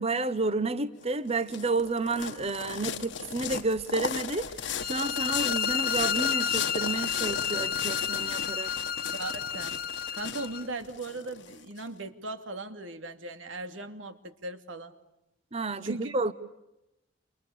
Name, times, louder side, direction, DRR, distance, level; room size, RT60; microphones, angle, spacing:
voice 1, 0.0-8.7 15.5-16.3, right 3 dB, 30° right, 1.1 m, -31 dB
sound 1, 1.0-11.8, left 6 dB, 70° left, 1.5 m, -36 dB
sound 2, 4.8-10.6, left 8 dB, 50° left, 1.0 m, -31 dB
voice 2, 9.1-9.8 10.1-14.9 15.8-16.1, right 2 dB, 85° right, 2.7 m, -38 dB
29.5 x 28.5 x 6.9 m
head